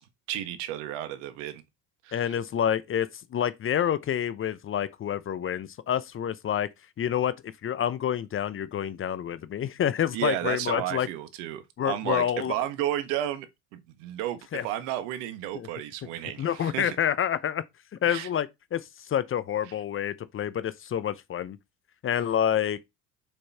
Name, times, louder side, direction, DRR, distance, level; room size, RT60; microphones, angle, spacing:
voice 1, 0.3-1.6 2.0-2.3 10.1-13.5 13.7-17.0 18.0-18.3, right 12 dB, 65° right, 1.4 m, -32 dB
voice 2, 2.1-6.7 7.0-7.3 7.6-11.1 11.8-12.5 14.5-14.7 15.5-15.7 16.4-17.6 18.0-21.6 22.0-22.8, left 9 dB, 30° left, 0.8 m, -28 dB
7.0 x 5.5 x 4.2 m
hypercardioid pair, 70°, 40 cm